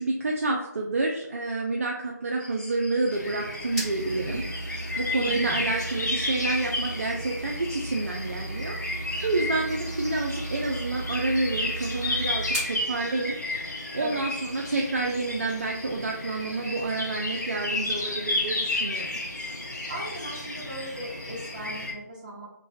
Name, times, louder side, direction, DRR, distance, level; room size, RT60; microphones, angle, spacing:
voice 1, 0.0-4.4 4.7-13.4 13.9-19.2, right 2 dB, 50° right, -1 dB, 0.3 m, -29 dB
sound 1, 2.4-21.9, left 2 dB, 30° left, 0.5 m, -47 dB
sound 2, 3.1-21.9, left 2 dB, 70° left, 0.7 m, -33 dB
sound 3, 3.3-12.8, right 2 dB, 5° right, 0.8 m, -37 dB
voice 2, 5.2-5.7 14.0-14.2 19.9-22.5, right 1 dB, 25° right, -6 dB, 0.9 m, -38 dB
3.2 x 2.1 x 2.2 m, 0.79 s
figure-of-eight pair, 155°, 10 cm